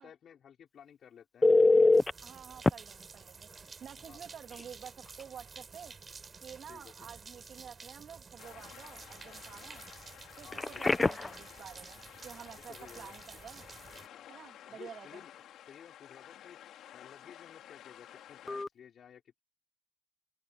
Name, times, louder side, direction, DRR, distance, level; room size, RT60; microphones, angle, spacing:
voice 1, 0.0-1.8 4.1-4.2 6.7-7.1 10.4-10.9 12.7-13.1 14.1-15.3 15.7-16.6 16.9-19.4, left 8 dB, 60° left, 5.1 m, -54 dB
Telephone, 1.4-2.1 2.6-2.7 4.5-4.6 5.1-5.2 10.5-11.4 18.5-18.7, left 3 dB, 20° left, 0.9 m, -24 dB
sound 1, 1.9-14.1, right 5 dB, 35° right, 6.9 m, -51 dB
voice 2, 2.2-5.9 6.4-9.8 10.4-13.6 14.3-15.2, right 8 dB, 60° right, 3.3 m, -50 dB
sound 2, 8.4-18.6, left 11 dB, 80° left, 4.9 m, -53 dB
cardioid pair, 90°, 0 cm